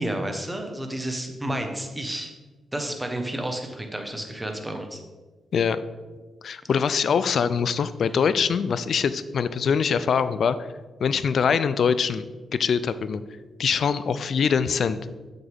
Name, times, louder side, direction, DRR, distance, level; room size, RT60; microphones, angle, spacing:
voice 1, 0.0-2.3 2.7-5.0, right 1 dB, 15° right, 4 dB, 1.2 m, -31 dB
voice 2, 6.4-10.6 11.0-12.3 12.5-13.2 13.6-15.0, left 6 dB, 65° left, 14 dB, 0.4 m, -23 dB
7.2 x 5.8 x 3.5 m, 1.3 s
cardioid pair, 65°, 0 cm